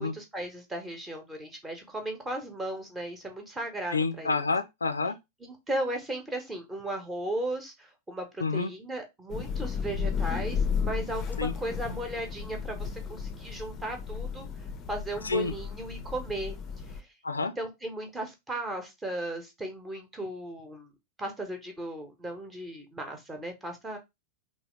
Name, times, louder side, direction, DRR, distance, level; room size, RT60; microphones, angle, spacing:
voice 1, 0.0-4.4 5.4-14.5 14.9-16.5 16.9-17.1 17.6-20.9 21.2-24.0, right 1 dB, 15° right, 1.0 m, -36 dB
voice 2, 3.9-5.2 8.4-8.7 11.4-11.5 15.2-15.5 17.2-17.5, left 4 dB, 75° left, 0.4 m, -28 dB
Thunder / Rain, 9.3-17.0, left 6 dB, 30° left, 0.5 m, -34 dB
3.5 x 2.4 x 3.1 m
figure-of-eight pair, 90°, 0 cm